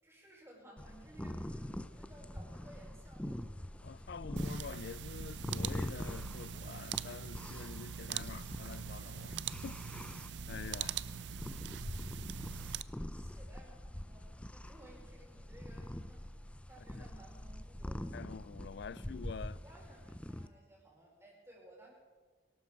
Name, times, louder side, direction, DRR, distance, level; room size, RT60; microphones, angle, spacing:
voice 1, 0.0-3.4 13.1-18.0 19.5-21.9, right 1 dB, 15° right, 4.5 m, -58 dB
sound 1, 0.8-20.5, left 1 dB, 5° left, 0.5 m, -44 dB
voice 2, 3.8-11.0 17.0-17.1 18.1-19.6, left 6 dB, 65° left, 0.4 m, -47 dB
sound 2, 4.4-12.8, right 9 dB, 80° right, 0.4 m, -43 dB
23.0 x 12.0 x 4.7 m
head